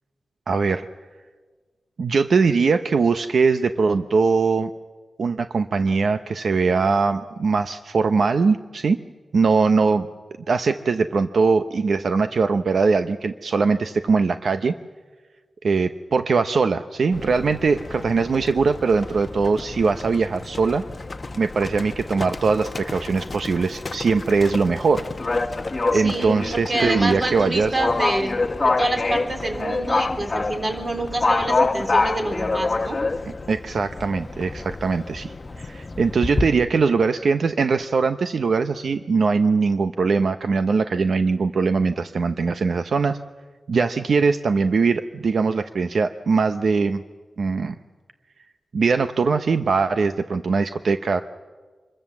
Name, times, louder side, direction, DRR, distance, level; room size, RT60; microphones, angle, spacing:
voice 1, 0.5-0.9 2.0-4.7 5.2-9.0 9.3-10.1 10.5-14.8 15.6-20.8 21.4-25.0 25.9-27.8 33.5-43.2 43.7-47.0 47.4-47.7 48.7-51.2, right 4 dB, 65° right, 9 dB, 0.7 m, -21 dB
Livestock farm animals working animals, 17.1-36.5, left 3 dB, 30° left, 0.9 m, -27 dB
voice 2, 25.9-28.3 28.6-33.0, right 2 dB, 30° right, 4 dB, 3.5 m, -27 dB
26.0 x 22.0 x 7.2 m, 1.4 s
wide cardioid pair, 155°, 0 cm